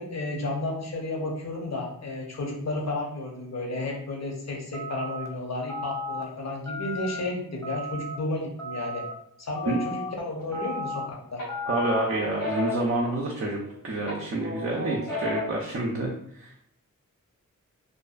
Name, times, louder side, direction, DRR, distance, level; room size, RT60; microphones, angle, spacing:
voice 1, 0.0-9.0 9.4-11.4, left 2 dB, 55° left, -1 dB, 0.7 m, -32 dB
sound 1, 4.7-5.3 5.7-6.2 6.7-7.2 7.6-8.2 8.6-9.1 9.6-10.1 10.5-11.1 11.5-12.0, left 2 dB, 10° left, 0.5 m, -34 dB
sound 2, 10.4-11.0 11.4-13.7 14.1-15.7, left 1 dB, 85° left, 1.1 m, -34 dB
voice 2, 11.7-13.6 13.8-16.7, right 2 dB, 45° right, -2 dB, 0.4 m, -28 dB
2.6 x 2.2 x 2.4 m, 0.71 s
wide cardioid pair, 60°, 32 cm